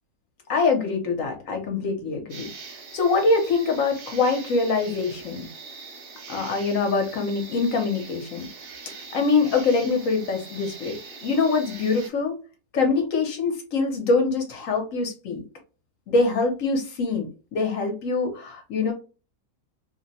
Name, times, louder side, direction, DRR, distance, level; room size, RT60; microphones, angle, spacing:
voice 1, 0.5-2.5 2.9-5.5 6.3-8.5 9.1-12.3 12.7-15.4 16.1-18.9, left 4 dB, 60° left, 4 dB, 1.1 m, -24 dB
sound 1, 2.3-12.1, right 4 dB, 60° right, 1.3 m, -42 dB
2.8 x 2.1 x 4.0 m, 0.34 s
omnidirectional pair, 1.7 m